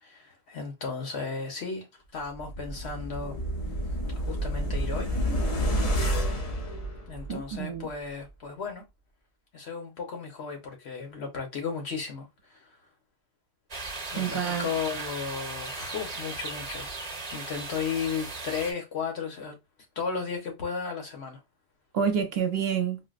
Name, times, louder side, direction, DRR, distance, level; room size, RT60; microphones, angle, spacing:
voice 1, 0.0-1.9 2.1-3.4 4.2-5.1 7.1-8.8 9.5-12.7 14.1-16.9 17.3-19.6 20.0-21.4, left 5 dB, 85° left, 1.3 m, -34 dB
sound 1, 2.3-7.5 7.9-8.0, equal, 40° left, 0.7 m, -29 dB
voice 2, 7.3-7.9 14.2-14.7 21.9-23.0, right 7 dB, 70° right, 0.9 m, -28 dB
sound 2, 13.7-18.7, right 3 dB, 35° right, 1.0 m, -37 dB
4.4 x 2.0 x 2.4 m
omnidirectional pair, 1.1 m